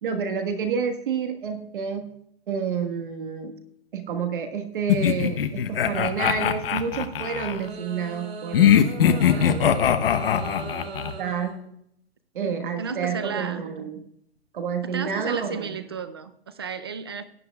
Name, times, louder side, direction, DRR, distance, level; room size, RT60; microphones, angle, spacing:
voice 1, 0.0-2.1 2.5-3.6 3.9-8.7 9.0-10.1 10.4-10.9 11.2-11.6 12.3-14.0 14.5-15.8, right 6 dB, 50° right, 1.4 m, -29 dB
sound 1, 4.9-7.6 8.5-11.1, left 9 dB, 60° left, 0.9 m, -21 dB
sound 2, 7.5-11.7, right 5 dB, 70° right, 2.0 m, -38 dB
voice 2, 12.4-13.6 14.8-17.2, right 5 dB, 25° right, 0.4 m, -33 dB
17.5 x 9.6 x 2.3 m
hypercardioid pair, 165°, 32 cm